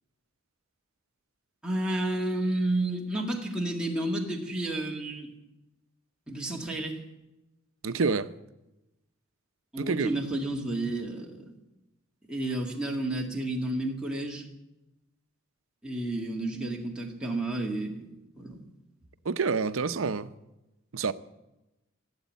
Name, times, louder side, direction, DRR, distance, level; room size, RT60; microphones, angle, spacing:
voice 1, 1.6-5.3 6.3-7.0 9.7-11.5 12.3-14.5 15.8-18.1 18.4-18.6, right 1 dB, 5° right, 2.1 m, -31 dB
voice 2, 7.8-8.3 9.8-10.1 19.3-20.3 20.9-21.1, right 4 dB, 75° right, 0.6 m, -27 dB
15.5 x 8.2 x 9.2 m
head